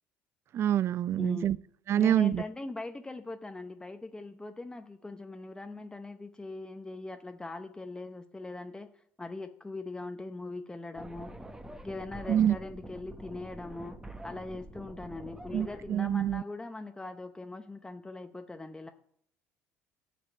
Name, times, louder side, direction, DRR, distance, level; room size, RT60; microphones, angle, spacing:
voice 1, 0.5-1.6 1.9-2.4 12.3-12.6 15.5-16.4, right 10 dB, 50° right, 0.3 m, -26 dB
voice 2, 2.0-11.3 11.8-14.0 14.2-18.9, left 2 dB, 15° left, 0.7 m, -41 dB
sound 1, 11.0-15.9, right 1 dB, 10° right, 1.0 m, -46 dB
9.7 x 5.2 x 8.2 m
supercardioid pair, 80°, 6 cm